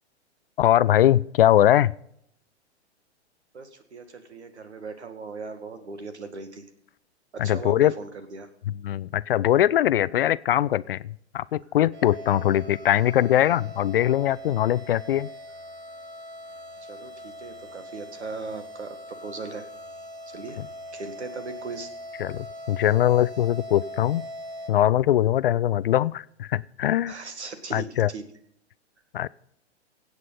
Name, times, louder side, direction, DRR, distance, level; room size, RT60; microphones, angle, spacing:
voice 1, 0.6-1.9 7.4-7.9 8.8-15.3 22.2-24.2 24.7-27.1 27.7-28.1 29.1-29.3, left 12 dB, 55° left, 20 dB, 0.4 m, -21 dB
voice 2, 3.5-6.6 7.3-8.5 16.8-19.7 20.3-20.6 20.9-21.9 27.1-28.2, right 4 dB, 75° right, 9 dB, 2.0 m, -38 dB
sound 1, 11.9-24.7, equal, 45° right, 3.1 m, -41 dB
24.5 x 8.4 x 4.1 m, 0.72 s
figure-of-eight pair, 105°, 34 cm